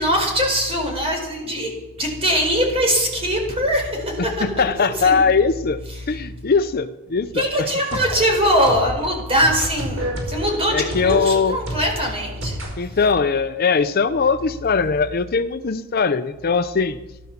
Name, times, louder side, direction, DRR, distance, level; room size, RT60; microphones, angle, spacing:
voice 1, 0.0-1.7 2.0-4.4 4.8-5.3 7.3-13.0, equal, 25° right, 1 dB, 4.6 m, -22 dB
voice 2, 4.2-5.8 6.1-7.7 10.7-11.6 12.8-17.0, left 5 dB, 45° left, 11 dB, 0.6 m, -20 dB
sound 1, 7.6-12.7, right 1 dB, 60° right, 5.1 m, -31 dB
15.0 x 12.0 x 7.3 m, 1.0 s
head